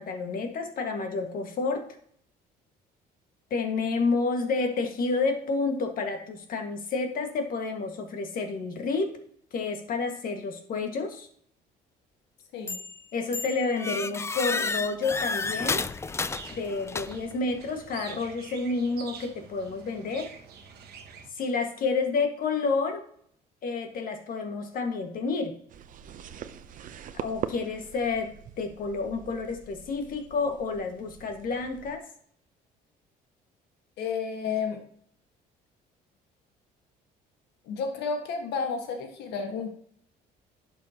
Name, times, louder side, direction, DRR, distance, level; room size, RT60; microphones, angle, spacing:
voice 1, 0.0-1.9 3.5-9.1 9.5-11.3 13.1-15.8 16.5-20.3 21.3-23.0 23.6-25.5 27.1-28.3 28.6-32.0, left 4 dB, 55° left, 5 dB, 1.7 m, -29 dB
sound 1, 12.7-13.0 13.3-17.4, left 4 dB, 15° left, 0.4 m, -31 dB
sound 2, 16.1-21.3, right 6 dB, 70° right, 1.3 m, -47 dB
sound 3, 25.7-32.0, right 9 dB, 50° right, 0.6 m, -42 dB
voice 2, 34.0-34.8 37.7-39.7, left 5 dB, 80° left, 4 dB, 1.6 m, -31 dB
11.0 x 6.4 x 2.9 m, 0.63 s
cardioid pair, 110°, 17 cm